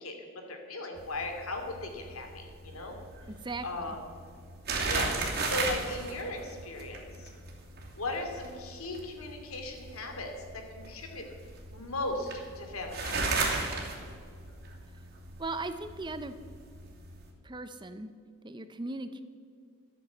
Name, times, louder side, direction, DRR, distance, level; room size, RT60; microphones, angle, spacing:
voice 1, 0.0-3.0 3.6-4.0 4.8-7.3 7.9-11.3 11.7-13.6, left 2 dB, 80° left, 4 dB, 2.5 m, -38 dB
sound 1, 1.0-17.3, right 3 dB, 50° right, 2.7 m, -36 dB
voice 2, 3.3-4.0 15.4-16.4 17.4-18.1 18.4-19.2, right 2 dB, 20° right, 11 dB, 0.6 m, -38 dB
13.0 x 9.2 x 8.3 m, 2.1 s
head